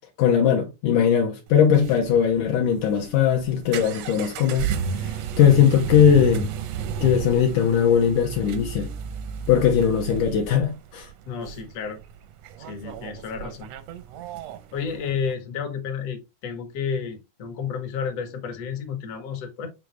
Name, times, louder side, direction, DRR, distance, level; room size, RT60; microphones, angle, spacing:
voice 1, 0.2-6.5 7.0-8.9 9.5-11.1, left 8 dB, 75° left, 2.3 m, -20 dB
sound 1, 1.5-15.3, right 7 dB, 80° right, 1.5 m, -33 dB
voice 2, 11.3-12.0 12.6-13.7 14.7-19.7, left 6 dB, 55° left, 2.2 m, -31 dB
8.1 x 3.9 x 3.2 m
omnidirectional pair, 3.9 m